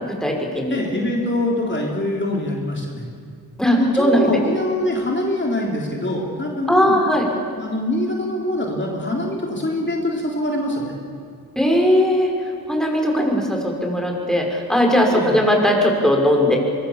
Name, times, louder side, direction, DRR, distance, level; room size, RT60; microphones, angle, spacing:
voice 1, 0.1-0.8 3.6-4.3 6.7-7.3 11.6-12.3 12.7-16.6, equal, ahead, 1 dB, 5.6 m, -18 dB
voice 2, 0.7-3.1 3.7-7.0 7.6-10.9 15.1-15.4, left 1 dB, 30° left, -1 dB, 3.6 m, -24 dB
24.0 x 23.0 x 7.3 m, 2.3 s
cardioid pair, 70°, 38 cm